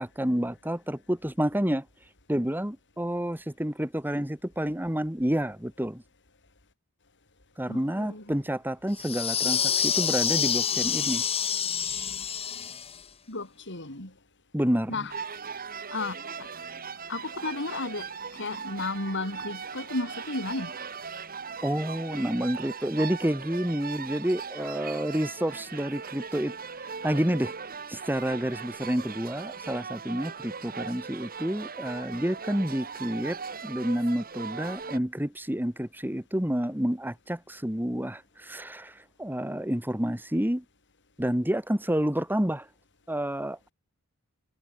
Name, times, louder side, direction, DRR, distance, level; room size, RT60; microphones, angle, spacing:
voice 1, 0.0-1.9 2.3-6.0 7.6-11.2 14.5-15.0 21.6-27.5 27.9-40.6 41.2-42.7 43.1-43.6, equal, 10° right, 2.2 m, -29 dB
voice 2, 7.7-8.4 13.3-14.1 14.9-15.1 15.9-16.5 17.1-20.8, left 2 dB, 55° left, 7.4 m, -34 dB
sound 1, 9.0-13.0, left 8 dB, 25° left, 1.0 m, -27 dB
sound 2, 15.1-35.0, right 6 dB, 40° right, 4.0 m, -39 dB
head